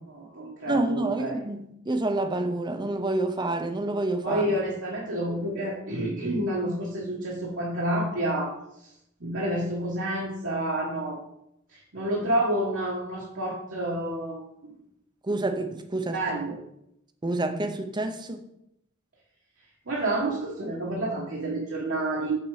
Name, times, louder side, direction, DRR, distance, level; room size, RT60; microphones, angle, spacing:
voice 1, 0.1-1.4 4.2-8.5 9.2-11.2 11.7-14.4 16.1-16.5 19.9-22.3, right 1 dB, 65° right, 1.3 m, -29 dB
voice 2, 0.7-4.4 15.2-16.2 17.2-18.4, right 2 dB, 20° right, 0.6 m, -28 dB
6.9 x 4.4 x 4.8 m
head